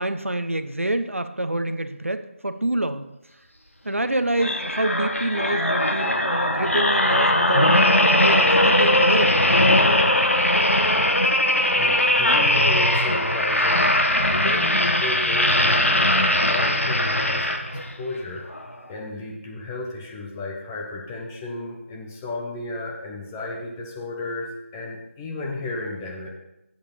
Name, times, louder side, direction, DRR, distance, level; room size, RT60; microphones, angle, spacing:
voice 1, 0.0-3.1 3.8-7.8 8.1-9.5, right 1 dB, 80° right, 10 dB, 0.8 m, -26 dB
sound 1, 4.4-17.9 18.5-18.7, left 1 dB, 80° left, 1.3 m, -20 dB
voice 2, 11.7-13.9 14.3-17.5 18.0-18.4 18.9-26.3, left 2 dB, 10° left, -2 dB, 0.9 m, -33 dB
8.2 x 6.7 x 5.3 m, 0.91 s
figure-of-eight pair, 160°, 7 cm